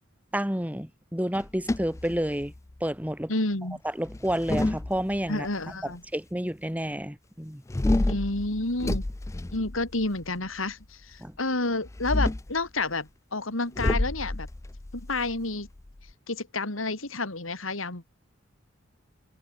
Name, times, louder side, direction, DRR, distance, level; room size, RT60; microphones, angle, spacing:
voice 1, 0.3-2.5 2.8-3.3 4.0-5.5 5.8-7.6 11.2-11.3, equal, 10° right, 3.0 m, -30 dB
sound 1, 1.3-2.7 4.0-5.5 7.7-10.3 11.8-12.6 13.8-16.1, left 1 dB, 15° left, 0.4 m, -29 dB
voice 2, 3.3-3.8 5.3-6.0 8.1-9.1 9.5-10.8 11.1-14.5 14.9-15.7 16.3-18.0, left 2 dB, 90° left, 3.8 m, -30 dB
head